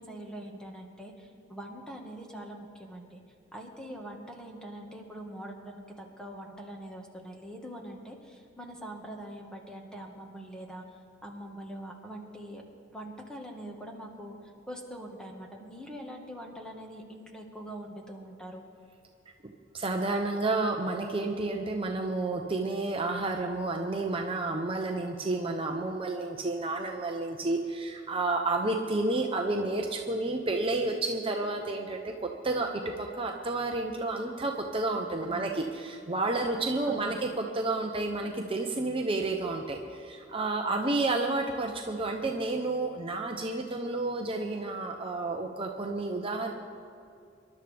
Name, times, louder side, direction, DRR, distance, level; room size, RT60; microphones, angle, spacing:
voice 1, 0.0-3.2 3.5-10.8 11.2-12.6 12.9-14.4 14.7-18.6 35.3-35.6 36.9-37.3, right 1 dB, 5° left, 0 dB, 1.6 m, -43 dB
voice 2, 19.7-32.1 32.4-32.7 33.0-46.5, right 2 dB, 30° right, 2 dB, 0.8 m, -30 dB
26.0 x 11.5 x 3.5 m, 2.5 s
head